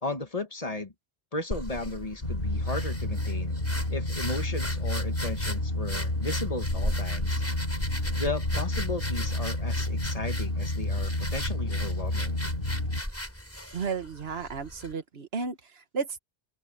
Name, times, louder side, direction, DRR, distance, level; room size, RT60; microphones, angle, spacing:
voice 1, 0.0-0.9 1.3-3.6 3.9-7.4 8.2-12.4, left 2 dB, 35° left, 1.6 m, -35 dB
sound 1, 1.5-14.9, equal, 15° left, 6.3 m, -37 dB
sound 2, 2.2-13.0, left 1 dB, 60° left, 4.4 m, -30 dB
voice 2, 13.7-16.2, right 5 dB, 70° right, 1.5 m, -33 dB
open air
omnidirectional pair, 1.1 m